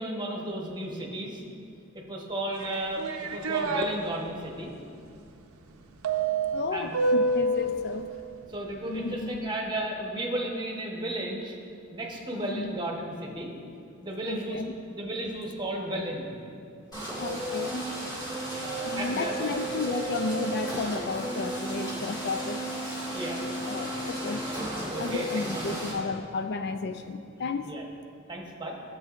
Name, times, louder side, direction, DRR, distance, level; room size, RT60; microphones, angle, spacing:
voice 1, 0.0-1.4 2.1-4.7 6.7-6.9 8.5-11.5 11.9-13.5 14.0-14.6 14.9-16.3 18.6-19.5 23.1-23.8 24.5-25.7 27.6-27.9 28.3-28.8, right 1 dB, 20° right, -1 dB, 1.0 m, -34 dB
sound 1, 2.6-3.9 6.0-7.7, right 2 dB, 85° right, 0.6 m, -27 dB
voice 2, 6.5-8.1 8.8-9.5 12.3-12.8 14.3-14.7 17.2-17.8 18.8-22.6 23.7-24.5 25.0-27.7, left 4 dB, 50° left, 8 dB, 0.3 m, -33 dB
sound 2, 16.9-25.9, right 1 dB, 20° left, 2.0 m, -34 dB
13.5 x 7.5 x 2.5 m, 2.4 s
head